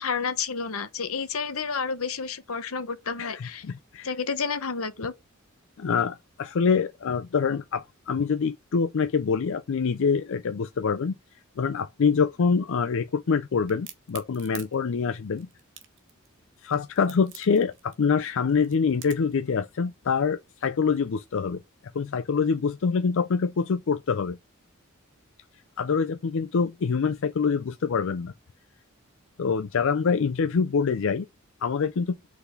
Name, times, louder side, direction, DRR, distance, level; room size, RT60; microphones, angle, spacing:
voice 1, 0.0-3.6 4.0-5.1, left 5 dB, 85° left, 1.1 m, -30 dB
voice 2, 3.2-4.1 5.8-11.1 11.6-15.5 16.6-21.6 21.9-24.4 25.8-28.3 29.4-31.3 31.6-32.2, left 5 dB, 65° left, 0.5 m, -25 dB
Crack, 13.7-19.4, right 10 dB, 60° right, 1.6 m, -46 dB
5.5 x 4.1 x 5.8 m
head